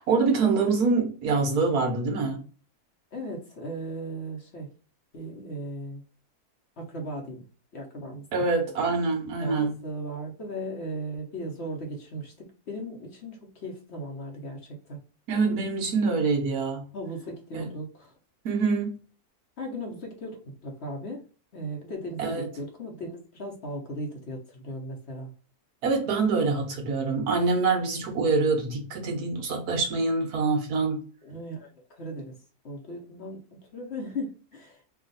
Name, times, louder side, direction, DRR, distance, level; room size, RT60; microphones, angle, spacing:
voice 1, 0.0-2.4 8.3-9.7 15.3-16.8 17.5-17.7 18.4-18.9 22.2-22.5 25.8-31.0, right 4 dB, 75° right, 1.5 m, -25 dB
voice 2, 3.1-4.7 5.1-6.0 6.8-7.4 7.7-8.2 9.4-15.0 16.9-18.1 19.6-21.2 21.5-25.3 31.2-32.4 32.6-33.4 33.7-34.8, right 1 dB, 50° left, 1.0 m, -37 dB
3.5 x 2.4 x 3.9 m
omnidirectional pair, 1.7 m